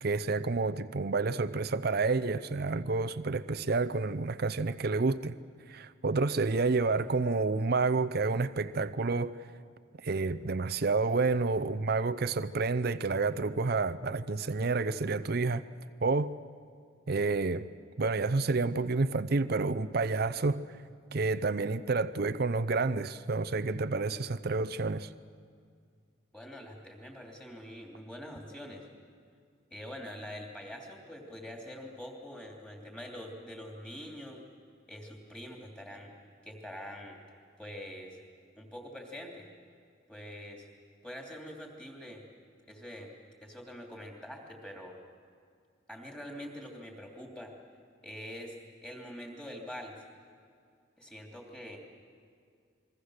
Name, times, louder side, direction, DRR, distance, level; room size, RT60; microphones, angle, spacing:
voice 1, 0.0-5.4 5.7-9.4 10.0-15.6 16.0-16.3 17.1-17.7 18.0-20.6 21.1-25.1, right 3 dB, 50° right, 13 dB, 0.6 m, -29 dB
voice 2, 26.3-28.9 29.7-34.4 34.9-36.1 36.4-37.2 37.6-38.2 38.6-39.5 40.1-40.7 41.0-42.2 42.7-43.1 43.4-45.0 45.9-47.5 48.0-50.0 51.0-51.8, equal, 5° left, 0 dB, 3.1 m, -44 dB
28.5 x 22.5 x 6.5 m, 2.2 s
head